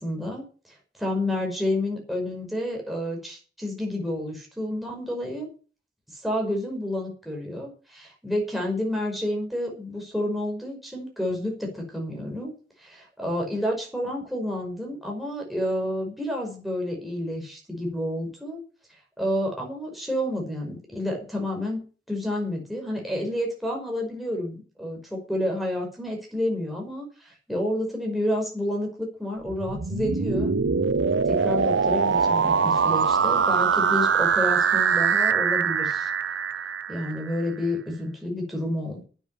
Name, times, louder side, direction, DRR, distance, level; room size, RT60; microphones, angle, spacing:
voice 1, 0.0-5.5 6.1-12.5 13.2-18.6 19.2-21.8 22.1-30.6 31.2-36.1 36.9-39.0, left 1 dB, ahead, -1 dB, 5.4 m, -29 dB
sound 1, 29.5-37.4, right 6 dB, 90° right, 0.7 m, -23 dB
10.5 x 9.4 x 8.6 m, 0.38 s
head